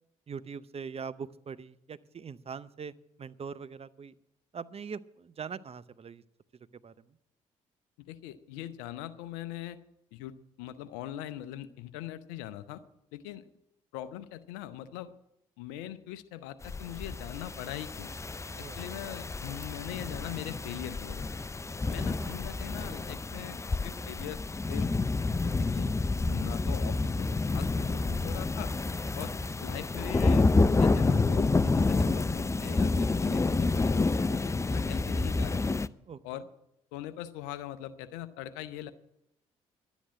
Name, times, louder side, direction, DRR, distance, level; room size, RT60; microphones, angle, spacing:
voice 1, 0.3-2.9 3.2-4.1 4.5-6.2 6.8-6.9 18.5-18.8 21.8-21.9 22.2-22.3 36.0-36.2, right 6 dB, 40° right, 15 dB, 0.7 m, -42 dB
voice 2, 8.0-9.8 10.1-12.8 13.1-13.4 13.9-15.1 15.6-18.1 18.6-21.3 21.9-24.4 24.7-25.9 26.3-28.7 29.2-29.3 29.6-30.5 30.8-35.6 36.2-36.4 36.9-38.9, left 13 dB, 80° left, 14 dB, 0.8 m, -41 dB
sound 1, 16.6-35.9, left 3 dB, 20° left, 0.5 m, -29 dB
11.5 x 10.5 x 7.5 m, 0.81 s
hypercardioid pair, 50°, 16 cm